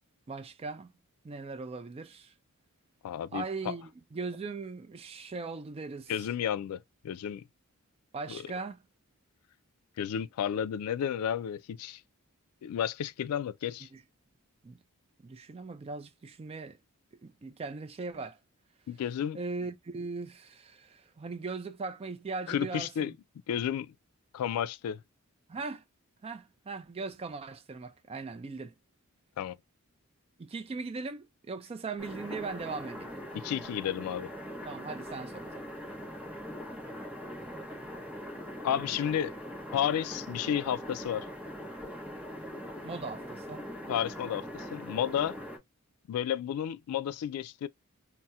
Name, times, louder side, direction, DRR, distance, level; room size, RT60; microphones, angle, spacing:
voice 1, 0.3-0.9 1.2-2.3 3.3-6.3 8.1-8.8 13.9-14.0 14.6-14.8 15.2-16.8 17.2-18.4 19.3-23.1 25.5-25.8 26.2-28.7 30.4-33.1 34.6-35.7 42.8-43.7, right 4 dB, 25° right, 0.3 m, -39 dB
voice 2, 3.0-3.7 6.1-7.4 8.3-8.4 10.0-12.0 12.6-13.9 18.9-19.4 22.5-23.1 23.5-23.9 24.3-25.0 29.4-29.6 33.3-34.3 38.6-39.3 39.7-41.3 43.9-45.4 46.1-47.7, left 9 dB, 90° left, 0.3 m, -32 dB
sound 1, 32.0-45.6, equal, 5° right, 0.7 m, -42 dB
4.1 x 2.0 x 2.2 m
head